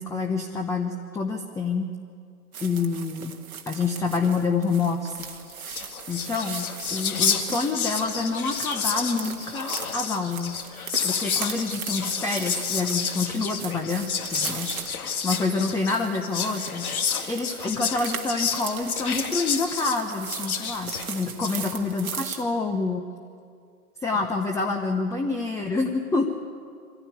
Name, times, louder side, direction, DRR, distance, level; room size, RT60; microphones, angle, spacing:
voice 1, 0.0-1.9 2.6-3.3 3.7-5.2 6.1-10.6 11.0-16.9 17.3-23.1 24.0-26.3, left 4 dB, 5° left, 4 dB, 0.9 m, -27 dB
sound 1, 2.5-22.4, right 7 dB, 65° right, 1.8 m, -39 dB
Whispering, 5.3-5.4 5.6-21.6, left 6 dB, 65° left, 2.1 m, -30 dB
24.5 x 16.0 x 9.6 m, 2.2 s
figure-of-eight pair, 110°, 46 cm